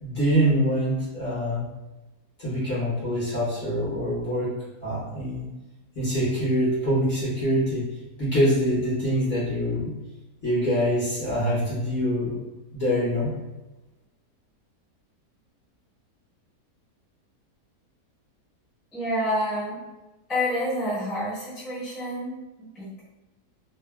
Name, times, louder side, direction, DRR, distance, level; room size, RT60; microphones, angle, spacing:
voice 1, 0.0-1.7 2.4-4.5 4.8-5.4 5.9-7.8 8.2-9.9 10.4-12.4 12.7-13.3, equal, 45° left, -9 dB, 1.0 m, -24 dB
voice 2, 18.9-19.8 20.3-23.0, equal, ahead, -11 dB, 0.8 m, -28 dB
2.8 x 2.4 x 2.2 m, 1.1 s
omnidirectional pair, 1.7 m